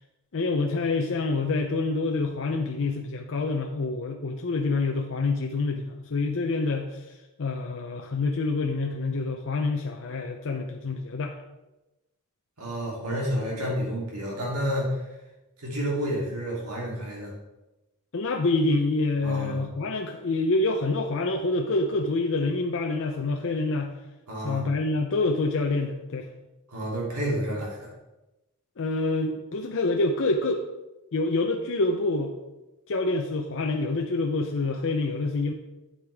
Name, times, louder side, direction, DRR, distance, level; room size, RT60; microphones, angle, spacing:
voice 1, 0.3-7.0 7.4-11.3 18.1-23.9 24.4-26.3 28.8-30.7 31.1-32.3 32.9-35.5, left 3 dB, 60° left, 3 dB, 0.6 m, -27 dB
voice 2, 12.6-15.0 15.6-17.3 19.2-19.7 24.3-24.6 26.7-27.9, equal, 85° right, -3 dB, 3.0 m, -30 dB
8.8 x 8.2 x 3.5 m, 1.0 s
head